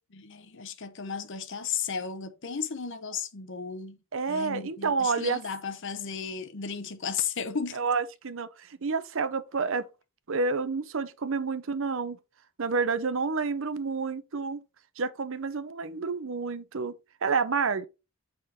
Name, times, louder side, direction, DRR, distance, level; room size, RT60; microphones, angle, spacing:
voice 1, 0.1-4.0 4.3-7.8, left 6 dB, 60° left, 0.8 m, -34 dB
voice 2, 4.1-5.4 7.7-9.9 10.3-12.2 12.6-14.6 15.0-16.9 17.2-17.9, right 4 dB, 60° right, 0.7 m, -29 dB
7.6 x 3.8 x 4.2 m
head